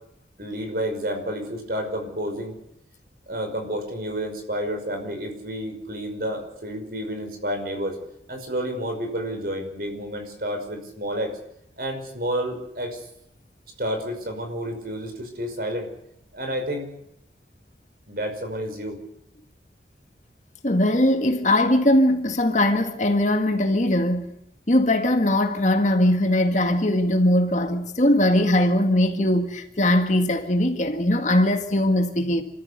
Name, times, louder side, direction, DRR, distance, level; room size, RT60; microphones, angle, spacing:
voice 1, 0.4-2.5 3.3-8.0 8.3-11.4 11.8-13.1 13.8-15.9 16.3-16.9 18.1-19.0, equal, 50° right, 5.5 m, -30 dB
voice 2, 20.6-24.3 24.7-32.4, left 1 dB, 40° left, 1.9 m, -20 dB
27.5 x 14.0 x 8.3 m
head